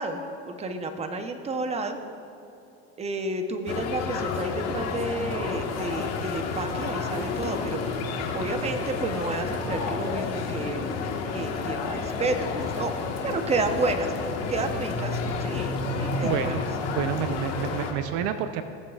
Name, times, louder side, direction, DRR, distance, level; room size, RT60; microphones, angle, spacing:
voice 1, 0.0-2.0 3.0-7.8 8.3-10.9 11.3-12.9 13.2-14.1 14.5-16.5, right 2 dB, 20° right, 6 dB, 0.9 m, -31 dB
sound 1, 3.7-17.9, left 4 dB, 50° left, 1.5 m, -30 dB
voice 2, 16.2-16.6 16.9-18.6, right 9 dB, 60° right, 9 dB, 0.6 m, -29 dB
18.0 x 7.7 x 2.4 m, 3.0 s
supercardioid pair, 110°, 33 cm